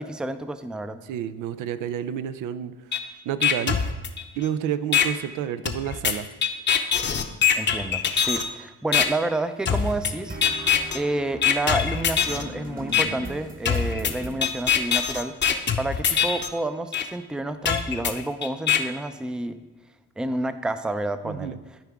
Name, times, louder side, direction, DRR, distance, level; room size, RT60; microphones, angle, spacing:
voice 1, 0.0-1.0 7.5-10.4 10.9-15.3 15.8-19.6 20.2-21.6, right 2 dB, 5° right, 11 dB, 0.4 m, -29 dB
voice 2, 1.0-2.7 3.3-3.8 4.4-6.3 21.2-21.6, right 10 dB, 90° right, 13 dB, 0.5 m, -29 dB
sound 1, 2.9-3.0 3.4-4.5 4.9-5.1 5.7-8.5 8.9-9.1 9.7-10.1 10.4-11.0 11.4-12.4 12.9-13.0 13.7-16.5 16.9-17.0 17.7-18.8, left 8 dB, 35° left, 0.7 m, -22 dB
sound 2, 9.7-14.6, right 1 dB, 30° right, 1.0 m, -39 dB
13.0 x 4.7 x 3.5 m, 1.2 s
cardioid pair, 90°, 30 cm